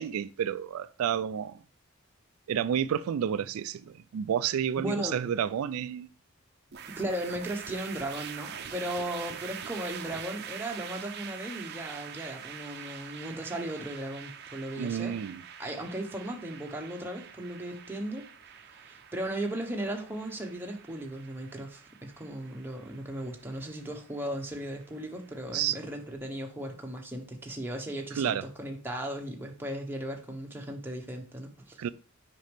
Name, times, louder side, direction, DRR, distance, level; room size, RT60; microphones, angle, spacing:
voice 1, 0.0-1.6 2.5-6.1 14.8-15.4 25.5-25.8 28.2-28.4 31.8-31.9, right 9 dB, 90° right, 0.3 m, -30 dB
voice 2, 4.8-5.2 7.0-15.2 15.6-18.3 18.8-31.8, right 1 dB, 10° right, 1.1 m, -36 dB
sound 1, 6.7-26.0, right 8 dB, 50° right, 0.6 m, -45 dB
6.5 x 5.3 x 3.4 m
head